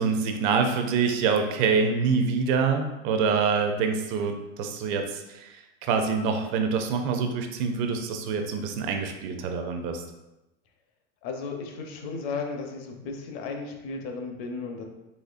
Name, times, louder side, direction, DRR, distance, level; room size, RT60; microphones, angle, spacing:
voice 1, 0.0-10.0, right 5 dB, 45° right, 5 dB, 0.5 m, -26 dB
voice 2, 11.2-14.8, left 4 dB, 50° left, 3 dB, 0.7 m, -34 dB
4.1 x 3.0 x 2.4 m, 0.97 s
hypercardioid pair, 120°, 38 cm